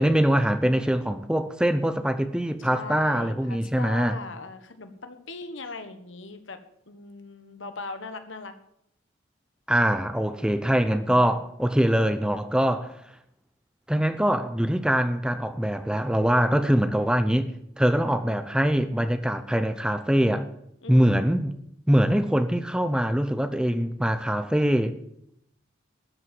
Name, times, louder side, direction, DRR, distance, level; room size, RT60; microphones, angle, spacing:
voice 1, 0.0-4.2 9.7-12.9 13.9-17.5 17.8-20.5 20.9-21.6 21.9-24.9, equal, 5° right, 0.6 m, -23 dB
voice 2, 2.6-6.6 6.9-8.6 20.8-21.4, left 4 dB, 70° left, 1.4 m, -40 dB
12.5 x 8.0 x 7.5 m
head